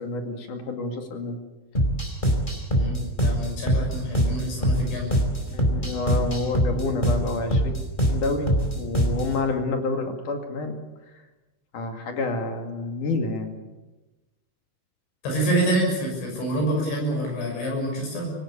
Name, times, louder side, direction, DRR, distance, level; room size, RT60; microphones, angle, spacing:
voice 1, 0.0-1.4 5.5-7.8 8.1-10.8 11.7-13.6, left 3 dB, 50° left, 5 dB, 3.2 m, -28 dB
sound 1, 1.7-9.4, equal, 10° left, 3.7 m, -24 dB
voice 2, 2.7-5.1 15.2-18.3, right 1 dB, 70° left, 0 dB, 8.7 m, -27 dB
25.5 x 18.5 x 8.6 m, 1.1 s
omnidirectional pair, 5.4 m